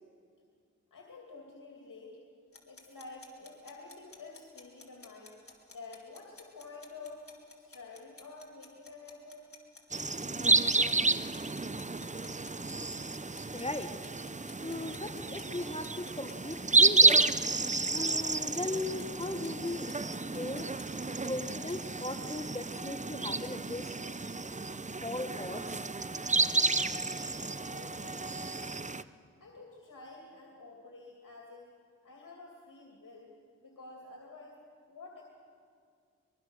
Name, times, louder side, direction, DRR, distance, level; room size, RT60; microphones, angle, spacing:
voice 1, 0.9-2.2 2.7-5.4 5.7-7.3 7.6-9.5 27.2-28.9 29.4-31.7 32.0-33.3 33.6-34.6 34.9-35.2, left 3 dB, 80° left, -1 dB, 2.7 m, -50 dB
sound 1, 2.5-21.7, left 3 dB, 45° left, 3.6 m, -53 dB
sound 2, 9.9-29.0, right 3 dB, 25° right, 0.7 m, -30 dB
voice 2, 13.5-13.9 14.6-17.3 17.9-19.9 20.3-20.7 21.2-23.9 25.0-25.8, left 2 dB, 20° left, 8 dB, 1.2 m, -38 dB
23.0 x 22.5 x 6.5 m, 2.2 s
cardioid pair, 40°, 31 cm